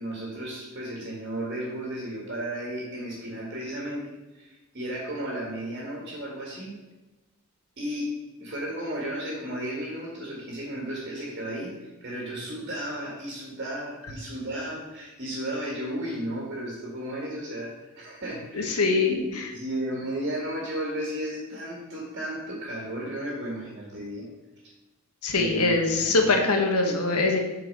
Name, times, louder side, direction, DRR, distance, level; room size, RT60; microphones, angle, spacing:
voice 1, 0.0-4.0 4.3-6.7 7.8-8.1 8.4-24.2 25.4-26.4, right 1 dB, 45° right, -3 dB, 1.8 m, -34 dB
voice 2, 18.5-19.2 25.2-27.4, left 3 dB, 90° left, 3 dB, 1.3 m, -23 dB
7.9 x 4.5 x 5.4 m, 1.1 s
head